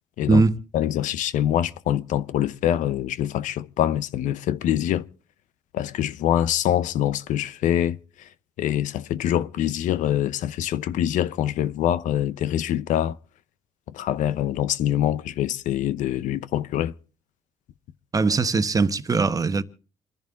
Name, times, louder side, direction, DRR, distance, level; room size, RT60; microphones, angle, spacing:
voice 1, 0.7-5.1 5.7-8.3 8.6-13.2 13.9-16.9, left 11 dB, 75° left, 0.8 m, -24 dB
voice 2, 18.1-19.6, right 4 dB, 25° right, 1.2 m, -20 dB
28.0 x 10.5 x 3.7 m
cardioid pair, 95°, 13 cm